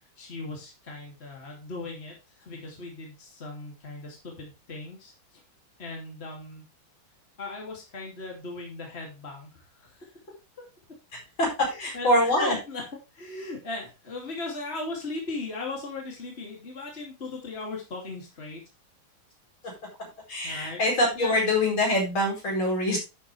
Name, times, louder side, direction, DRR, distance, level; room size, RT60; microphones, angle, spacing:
voice 1, 0.2-5.1 5.8-6.6 7.4-10.1 11.6-12.8 13.1-18.6 20.4-21.5, left 3 dB, 30° left, -1 dB, 2.9 m, -38 dB
voice 2, 11.1-11.5 11.8-12.6 19.6-19.7 20.0-23.0, left 1 dB, 70° left, -1 dB, 5.5 m, -25 dB
11.0 x 7.5 x 3.3 m, 0.27 s
omnidirectional pair, 2.3 m